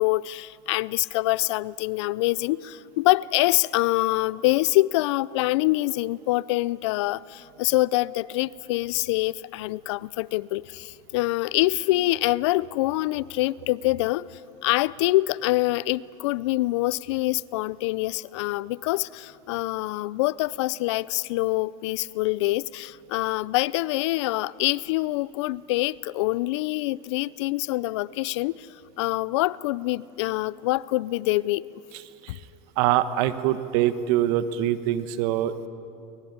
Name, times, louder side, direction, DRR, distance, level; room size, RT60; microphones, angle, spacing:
voice 1, 0.0-28.7 29.0-31.6 32.3-32.4, left 18 dB, 80° left, 0.5 m, -25 dB
voice 2, 32.8-35.7, right 12 dB, 70° right, 1.3 m, -24 dB
23.5 x 20.5 x 9.6 m
supercardioid pair, 105°, 15 cm